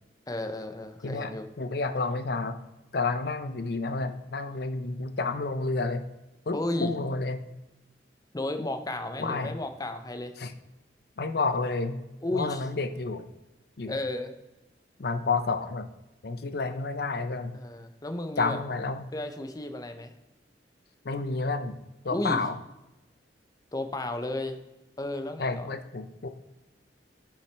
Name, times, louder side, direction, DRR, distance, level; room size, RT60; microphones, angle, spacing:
voice 1, 0.3-1.5 6.5-6.9 8.3-10.3 12.2-12.7 13.9-14.4 17.5-18.6 19.1-20.1 22.1-22.4 23.7-24.6 25.0-25.7, left 1 dB, 20° left, 8 dB, 0.7 m, -33 dB
voice 2, 1.6-2.6 2.9-6.0 6.5-7.5 9.2-9.5 10.4-10.5 11.2-12.0 12.3-13.3 13.8-14.0 15.0-15.9 16.2-17.6 18.4-19.1 21.0-21.8 22.0-22.6 25.4-26.3, left 3 dB, 60° left, 9 dB, 0.7 m, -30 dB
10.5 x 5.8 x 3.4 m, 0.98 s
head